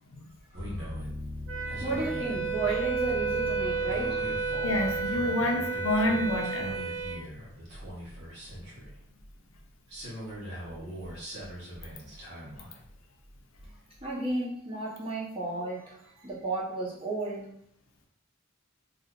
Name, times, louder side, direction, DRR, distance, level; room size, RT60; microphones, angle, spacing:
voice 1, 0.5-0.9 1.8-4.4 14.0-17.5, right 2 dB, 30° right, -6 dB, 0.9 m, -33 dB
sound 1, 0.5-9.6 9.9-13.0 13.2-14.1, equal, 55° right, 1.0 m, -40 dB
Wind instrument woodwind instrument, 1.5-7.2, right 5 dB, 90° right, 0.7 m, -32 dB
voice 2, 4.6-6.7, left 1 dB, 75° left, 1 dB, 0.6 m, -28 dB
2.6 x 2.3 x 3.7 m, 0.70 s
head